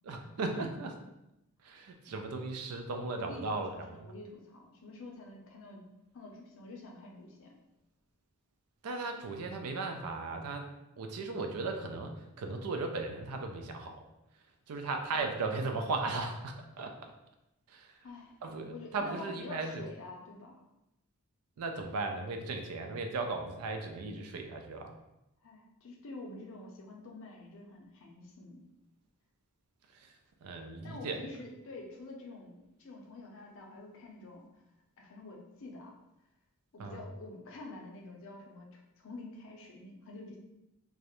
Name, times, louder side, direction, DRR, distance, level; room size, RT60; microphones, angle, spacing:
voice 1, 0.0-1.0 1.6-3.8 8.8-10.7 11.0-14.0 14.7-17.1 17.7-17.9 18.4-19.8 21.6-24.9 29.9-30.1 30.4-31.2 36.8-37.0, right 3 dB, 80° right, 5 dB, 0.4 m, -37 dB
voice 2, 3.0-3.4 3.7-5.8 6.1-7.5 15.1-15.3 18.0-18.3 18.7-20.6 25.4-28.7 30.8-34.5 35.0-36.0 36.7-40.4, left 2 dB, 60° left, 0 dB, 0.5 m, -47 dB
2.3 x 2.0 x 2.9 m, 0.90 s
head